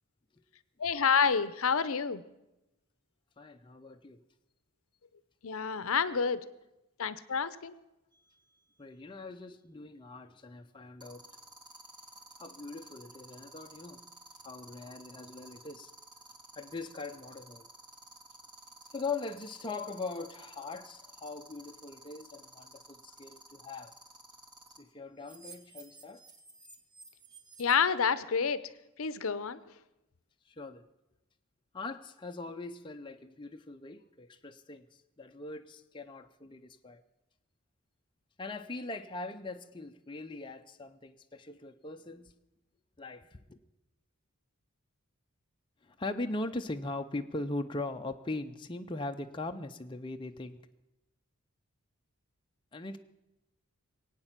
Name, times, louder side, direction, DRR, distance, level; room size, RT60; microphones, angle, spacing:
voice 1, 0.8-2.2 5.4-6.4 7.0-7.7 27.6-28.6 29.0-29.6, left 6 dB, 70° left, 15 dB, 0.7 m, -28 dB
voice 2, 3.4-4.2 8.8-11.3 12.4-14.0 14.4-15.9 16.6-17.7 18.9-24.0 24.8-26.2 30.5-30.8 31.7-37.0 38.4-42.3 43.0-43.6 45.8-50.6 52.7-53.0, left 2 dB, 20° left, 5 dB, 0.6 m, -41 dB
sound 1, 8.1-8.4 11.0-24.8 25.2-27.8, right 2 dB, 20° right, 1.7 m, -52 dB
21.5 x 8.9 x 7.4 m, 0.94 s
head